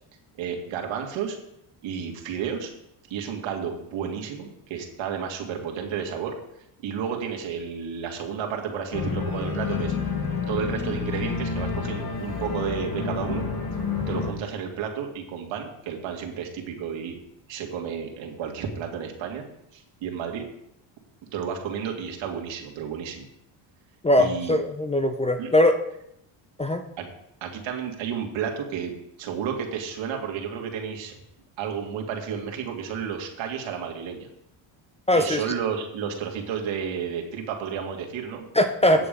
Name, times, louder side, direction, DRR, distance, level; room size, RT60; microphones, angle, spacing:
voice 1, 0.4-1.4 1.8-2.7 3.1-6.3 6.8-9.9 10.5-13.5 14.1-17.1 17.5-19.4 19.7-20.4 21.3-23.3 24.2-24.6 25.4-25.5 27.0-27.1 27.4-28.9 29.2-31.1 31.6-34.3 35.2-38.4 38.9-39.1, right 7 dB, 70° right, 2 dB, 2.2 m, -32 dB
Organ, 8.9-14.3, left 5 dB, 50° left, 2.5 m, -29 dB
voice 2, 24.0-25.8 26.6-26.8 35.1-35.4 38.5-39.0, left 1 dB, 15° left, 8 dB, 0.6 m, -20 dB
9.1 x 6.9 x 5.2 m, 0.77 s
cardioid pair, 100°, 48 cm